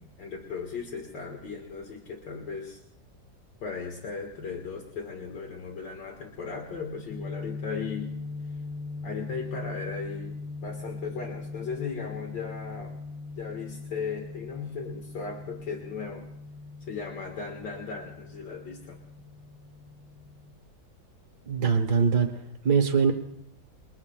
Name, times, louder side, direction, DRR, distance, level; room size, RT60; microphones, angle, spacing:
voice 1, 0.0-2.8 3.6-8.1 9.0-13.0 13.4-16.3 16.8-19.0, left 5 dB, 70° left, 1 dB, 2.2 m, -37 dB
sound 1, 7.1-20.5, left 3 dB, 15° left, 1.4 m, -40 dB
voice 2, 21.5-22.3 22.6-23.1, right 5 dB, 55° right, 3 dB, 1.7 m, -22 dB
27.5 x 23.0 x 2.3 m, 0.76 s
omnidirectional pair, 2.1 m